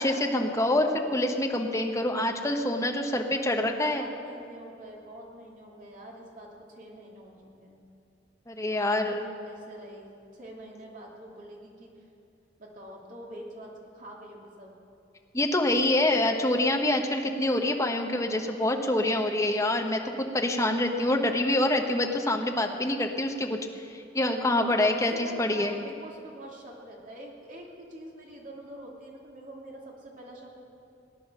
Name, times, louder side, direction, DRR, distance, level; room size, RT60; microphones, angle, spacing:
voice 1, 0.0-4.0 8.5-9.3 15.3-23.6 23.9-25.7, left 1 dB, 15° left, 3 dB, 1.1 m, -26 dB
voice 2, 3.1-7.3 7.6-7.8 8.7-11.9 12.6-14.7 18.4-18.9 24.6-30.6, right 1 dB, 45° right, -2 dB, 2.7 m, -45 dB
18.5 x 10.0 x 6.6 m, 2.7 s
head